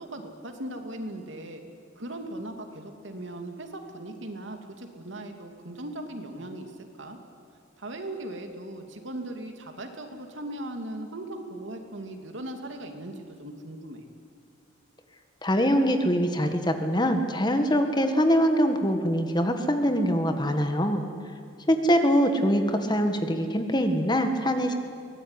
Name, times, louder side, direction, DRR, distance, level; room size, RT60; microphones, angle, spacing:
voice 1, 0.0-1.6 2.0-7.2 7.8-14.0, right 1 dB, 70° right, 5 dB, 2.7 m, -38 dB
voice 2, 15.4-21.0 21.7-24.7, equal, 20° left, 6 dB, 1.7 m, -23 dB
23.5 x 18.0 x 9.9 m, 2.4 s
head